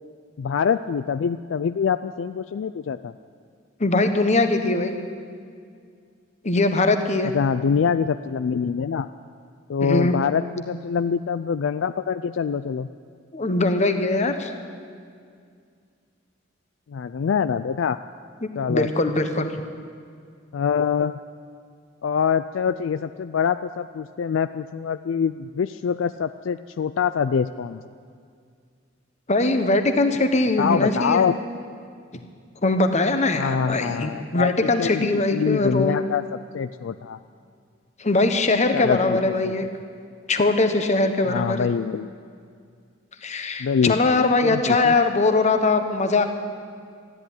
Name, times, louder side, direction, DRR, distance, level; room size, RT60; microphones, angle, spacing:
voice 1, 0.4-3.1 7.3-9.1 9.7-12.9 16.9-18.0 18.6-18.9 20.5-21.1 22.0-27.8 30.6-31.3 33.3-36.2 36.5-37.2 38.7-39.5 41.3-42.1 43.6-45.0, left 6 dB, 70° left, 11 dB, 0.4 m, -25 dB
voice 2, 3.8-5.0 6.4-7.3 9.8-10.1 13.3-14.5 18.7-19.5 29.3-31.2 32.6-36.0 38.0-39.7 40.3-41.7 43.2-46.2, left 2 dB, 35° left, 7 dB, 1.1 m, -21 dB
13.5 x 10.5 x 9.9 m, 2.2 s
head